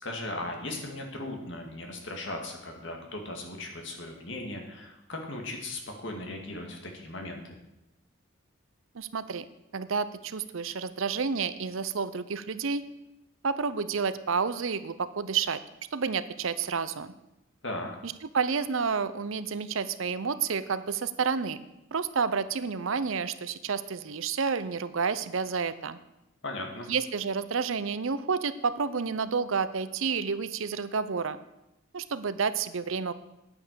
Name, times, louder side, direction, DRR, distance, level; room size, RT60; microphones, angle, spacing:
voice 1, 0.0-7.6 17.6-17.9 26.4-26.9, left 2 dB, 55° left, 2 dB, 2.2 m, -37 dB
voice 2, 8.9-9.5 9.7-12.8 13.4-15.6 15.9-17.1 18.0-21.6 21.9-26.0 26.9-31.4 31.9-33.1, right 5 dB, 65° right, 14 dB, 0.6 m, -30 dB
9.7 x 8.8 x 6.8 m, 0.91 s
head